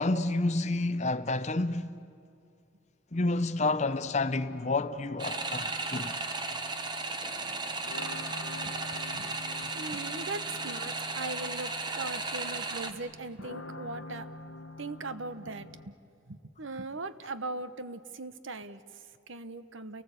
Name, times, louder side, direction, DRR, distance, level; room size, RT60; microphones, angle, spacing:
voice 1, 0.0-1.9 3.1-6.2 9.3-9.7, left 2 dB, 35° left, 0.7 m, -30 dB
sound 1, 3.6-15.9, left 2 dB, 80° left, 0.9 m, -47 dB
sound 2, 5.2-12.9, right 3 dB, 20° right, 1.0 m, -35 dB
voice 2, 8.3-8.7 9.1-9.3 9.7-14.3 14.8-15.9 16.3-20.0, right 3 dB, 75° right, 0.9 m, -40 dB
29.5 x 19.0 x 8.2 m
head